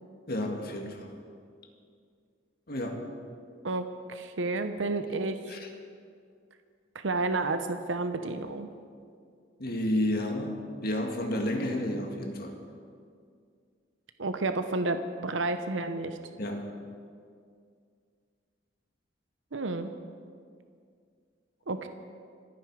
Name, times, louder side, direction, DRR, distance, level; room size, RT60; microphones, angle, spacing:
voice 1, 0.3-1.1 2.7-3.0 5.5-5.7 9.6-10.5 10.8-12.6 16.4-16.7, left 1 dB, 55° left, 3 dB, 1.9 m, -31 dB
voice 2, 3.6-5.6 7.0-8.7 14.2-16.2 19.5-19.9 21.7-21.9, right 2 dB, 80° right, 8 dB, 0.8 m, -31 dB
26.5 x 9.6 x 4.8 m, 2.2 s
head